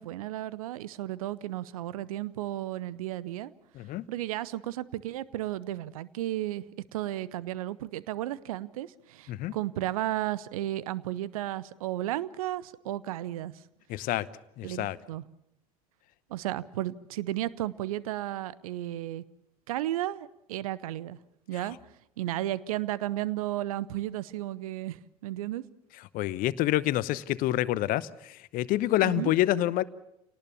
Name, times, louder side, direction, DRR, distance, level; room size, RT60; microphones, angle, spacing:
voice 1, 0.0-3.5 4.1-6.6 6.9-13.5 14.6-15.2 16.3-19.2 19.7-21.2 21.5-21.8 22.2-25.6 29.0-29.3, right 14 dB, 65° right, 19 dB, 0.8 m, -33 dB
voice 2, 3.7-4.0 9.3-9.5 13.9-14.3 14.6-15.0 26.1-29.8, left 14 dB, 45° left, 18 dB, 0.9 m, -27 dB
27.5 x 18.5 x 7.1 m, 0.82 s
figure-of-eight pair, 70°, 19 cm